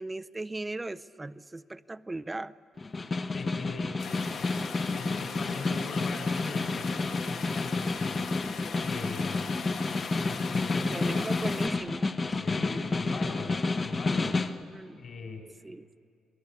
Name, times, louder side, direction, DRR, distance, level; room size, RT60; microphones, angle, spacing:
voice 1, 0.0-2.5 10.9-12.1 14.7-15.0 15.6-15.9, right 2 dB, 15° right, 16 dB, 0.6 m, -38 dB
Snare drum, 2.8-14.6, left 3 dB, 30° left, 1.0 m, -30 dB
voice 2, 3.3-8.3 8.8-9.5 10.2-11.4 12.3-14.4 15.0-15.5, left 4 dB, 50° left, 5 dB, 4.1 m, -41 dB
sound 1, 4.0-11.7, left 5 dB, 70° left, 1.7 m, -40 dB
27.5 x 21.0 x 8.4 m, 2.4 s
cardioid pair, 90°, 0 cm